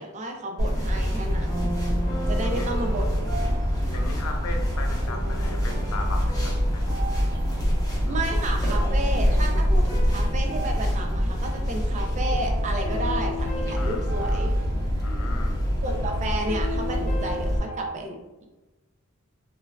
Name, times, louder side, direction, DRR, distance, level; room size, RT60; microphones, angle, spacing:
voice 1, 0.0-1.7 2.3-3.1 8.1-14.5 15.8-18.2, right 1 dB, 35° right, 3 dB, 0.4 m, -32 dB
sound 1, 0.6-17.9, right 1 dB, 35° left, 1.0 m, -38 dB
sound 2, 0.6-17.6, equal, 15° left, 0.6 m, -25 dB
voice 2, 2.4-2.8 3.9-7.0 8.0-8.2 13.8-14.5 15.0-15.6, left 3 dB, 90° left, 3 dB, 0.5 m, -38 dB
3.1 x 2.3 x 2.2 m, 1.1 s
head